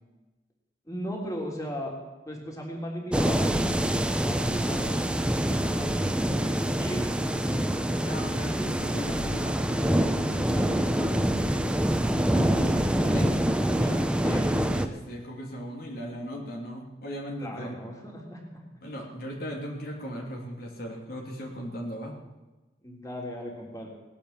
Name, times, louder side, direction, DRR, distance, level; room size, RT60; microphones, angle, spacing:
voice 1, 0.9-1.9 2.3-4.9 5.2-7.8 8.6-9.2 17.4-18.4 22.8-23.9, equal, 20° left, -1 dB, 3.4 m, -37 dB
sound 1, 3.1-14.9, right 1 dB, 5° right, 0.9 m, -26 dB
voice 2, 8.0-11.6 12.3-17.8 18.8-22.1, equal, 60° left, -1 dB, 3.0 m, -38 dB
18.5 x 10.0 x 7.4 m, 1.1 s
head